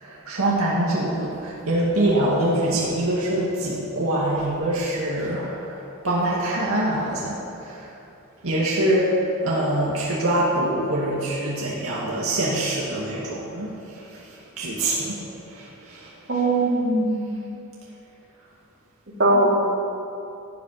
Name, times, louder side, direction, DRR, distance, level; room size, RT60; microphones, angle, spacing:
voice 1, 0.0-5.7 6.0-7.4 7.6-7.9 8.4-9.2 9.4-13.7 14.6-15.2 15.5-16.4 19.3-19.5, right 1 dB, 80° right, -5 dB, 1.9 m, -24 dB
voice 2, 16.3-17.2 19.2-19.5, right 2 dB, 55° right, -4 dB, 2.7 m, -20 dB
16.0 x 8.6 x 5.7 m, 2.8 s
head